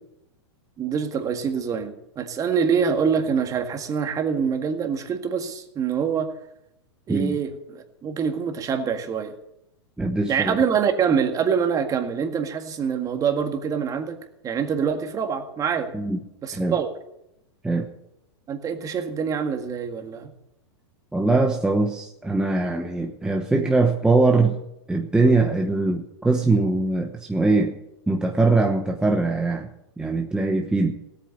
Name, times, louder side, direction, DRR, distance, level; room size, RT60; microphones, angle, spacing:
voice 1, 0.8-6.3 7.1-9.3 10.3-14.2 14.4-15.9 16.4-16.9 18.5-20.3, right 6 dB, 25° right, 6 dB, 1.9 m, -25 dB
voice 2, 10.0-10.6 15.9-16.2 16.5-16.8 17.6-17.9 21.1-24.6 24.9-27.8 28.1-29.7 30.0-30.9, right 3 dB, 5° right, 3 dB, 1.0 m, -22 dB
17.0 x 8.6 x 8.0 m, 0.83 s
hypercardioid pair, 130°, 15 cm